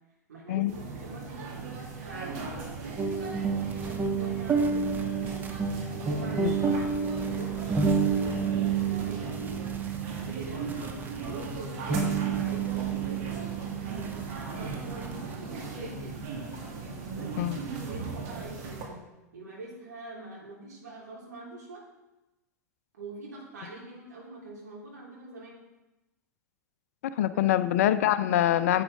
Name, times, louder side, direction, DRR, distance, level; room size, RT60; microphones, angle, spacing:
voice 1, 0.3-5.0 5.8-7.7 8.0-9.7 10.1-13.5 13.8-16.3 17.1-19.0 19.3-21.8 22.9-25.6 27.3-27.4, right 2 dB, 70° right, -4 dB, 3.5 m, -44 dB
sound 1, 0.7-18.9, right 4 dB, 50° right, 2.2 m, -38 dB
sound 2, 3.0-15.5, right 5 dB, 20° right, 0.9 m, -30 dB
voice 2, 6.4-6.7 17.4-17.6 27.2-28.8, left 12 dB, 55° left, 14 dB, 0.4 m, -25 dB
10.0 x 8.3 x 3.5 m, 1.0 s
figure-of-eight pair, 90°, 10 cm